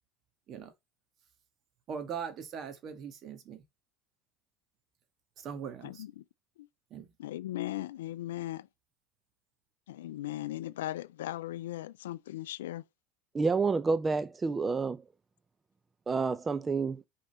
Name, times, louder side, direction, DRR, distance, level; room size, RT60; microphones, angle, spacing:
voice 1, 1.9-3.6 5.4-6.0 6.9-7.1, right 7 dB, 50° right, 1.6 m, -40 dB
voice 2, 5.8-6.2 6.6-6.7 7.2-8.7 9.9-12.8, left 14 dB, 85° left, 0.3 m, -38 dB
voice 3, 13.3-15.0 16.1-17.0, right 4 dB, 25° right, 0.5 m, -29 dB
5.3 x 5.1 x 4.0 m
hypercardioid pair, 85°, 0 cm